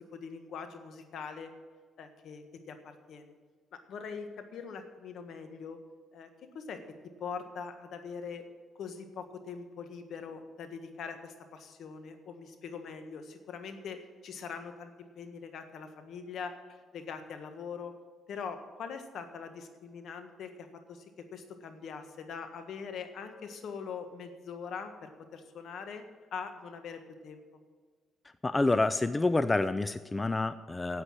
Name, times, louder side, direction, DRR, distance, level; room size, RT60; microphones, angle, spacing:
voice 1, 0.0-1.5 2.0-3.3 3.7-5.8 6.1-6.8 7.2-8.4 8.7-17.9 18.3-26.1 26.3-27.4, left 6 dB, 70° left, 7 dB, 1.5 m, -42 dB
voice 2, 28.4-31.0, left 2 dB, 20° left, 13 dB, 0.4 m, -28 dB
9.8 x 8.2 x 8.9 m, 1.5 s
cardioid pair, 90°, 0 cm